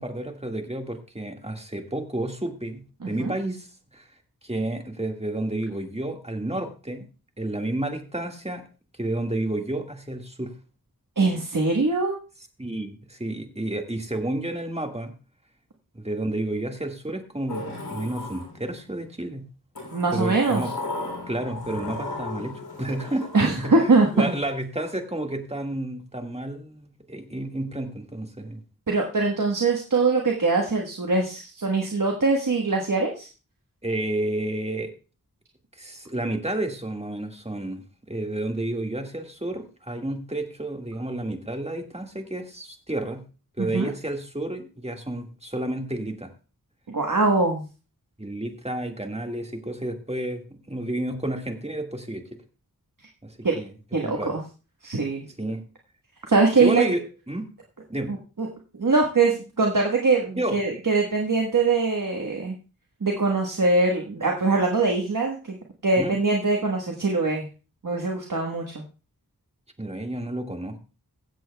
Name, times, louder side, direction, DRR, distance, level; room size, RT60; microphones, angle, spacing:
voice 1, 0.0-3.7 3.9-4.1 4.4-7.1 7.4-8.6 9.0-10.5 12.6-15.1 15.9-19.4 20.1-20.7 21.3-28.6 33.8-34.9 35.8-43.2 43.6-46.3 48.2-52.3 53.2-53.7 54.0-54.3 55.4-55.6 56.6-57.5 57.9-58.1 60.4-60.6 66.0-66.2 69.8-70.8, right 1 dB, 15° right, 4 dB, 1.8 m, -31 dB
voice 2, 3.0-3.3 11.2-12.2 19.9-20.6 23.3-24.3 28.9-33.3 43.6-43.9 46.9-47.6 53.4-53.6 53.9-54.4 54.8-55.2 56.3-56.8 58.1-58.5 58.7-62.5 63.0-65.6 65.8-67.4 67.8-68.7, right 3 dB, 60° right, 1 dB, 1.4 m, -22 dB
Sliding door, 17.5-19.0 19.7-24.4, left 2 dB, 90° left, 3.2 m, -36 dB
23.0 x 7.8 x 2.3 m, 0.34 s
wide cardioid pair, 45°, 36 cm